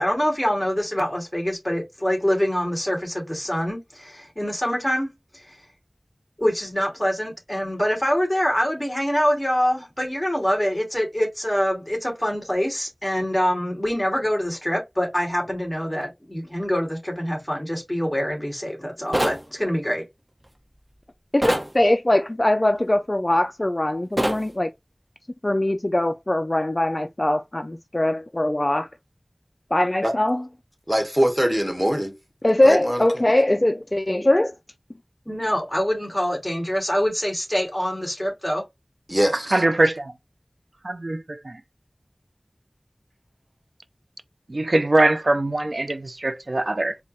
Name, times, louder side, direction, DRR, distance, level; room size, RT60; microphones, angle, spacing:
voice 1, 0.0-5.6 6.4-20.0 35.3-38.6, equal, 20° left, 2.4 m, -25 dB
sound 1, 19.1-19.4 21.4-21.7 24.2-24.4, right 1 dB, 25° right, 1.0 m, -23 dB
voice 2, 21.3-24.7 25.4-28.9 29.7-30.4 32.4-34.5, left 1 dB, 45° left, 0.3 m, -21 dB
voice 3, 30.9-32.1 32.6-33.0 39.1-39.6, equal, 5° right, 1.5 m, -22 dB
voice 4, 39.5-39.9 40.9-41.2 44.5-47.0, right 2 dB, 75° right, 0.5 m, -21 dB
4.4 x 2.3 x 4.1 m
wide cardioid pair, 40°, 0 cm